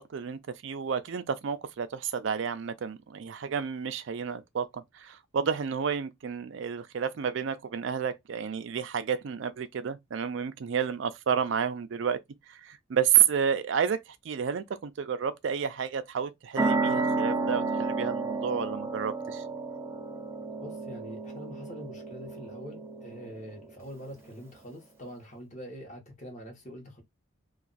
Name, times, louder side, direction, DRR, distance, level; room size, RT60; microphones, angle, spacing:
voice 1, 0.0-12.2 12.5-14.0 14.2-19.4, right 7 dB, 65° right, 0.4 m, -30 dB
sound 1, 16.6-23.8, right 3 dB, 10° right, 0.5 m, -32 dB
voice 2, 20.6-27.0, equal, 35° left, 1.1 m, -44 dB
2.5 x 2.3 x 3.9 m
head